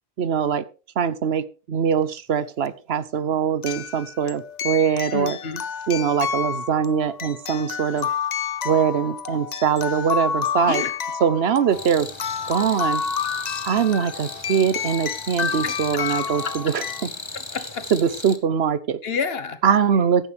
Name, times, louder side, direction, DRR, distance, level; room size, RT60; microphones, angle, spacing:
voice 1, 0.2-0.6 1.0-5.4 5.9-8.1 8.6-10.8 11.2-12.1 12.4-13.0 13.6-17.1 17.9-19.0 19.6-20.3, right 7 dB, 85° right, 16 dB, 1.1 m, -22 dB
sound 1, 2.2-2.3 3.6-17.0, left 6 dB, 45° left, 0.7 m, -29 dB
voice 2, 5.1-5.6 10.7-10.9 15.6-16.2 16.4-16.7 17.3-17.8 19.0-19.6, left 5 dB, 70° left, 11 dB, 1.4 m, -29 dB
sound 2, 11.7-18.4, left 3 dB, 30° left, 1.2 m, -37 dB
15.0 x 10.5 x 3.4 m, 0.34 s
omnidirectional pair, 1.0 m